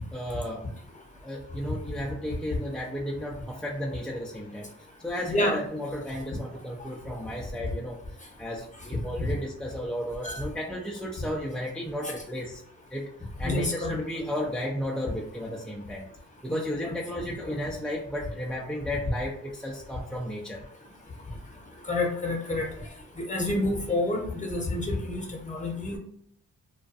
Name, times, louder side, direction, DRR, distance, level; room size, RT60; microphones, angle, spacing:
voice 1, 0.1-0.7 1.2-4.7 5.0-8.0 8.4-12.6 12.9-13.1 13.4-16.1 16.4-20.6, equal, ahead, -3 dB, 0.5 m, -33 dB
voice 2, 13.4-13.9 16.8-16.9 17.4-17.5 21.9-22.7 23.2-26.0, left 2 dB, 20° left, 1 dB, 0.9 m, -28 dB
2.3 x 2.2 x 2.5 m, 0.68 s
supercardioid pair, 45°, 33 cm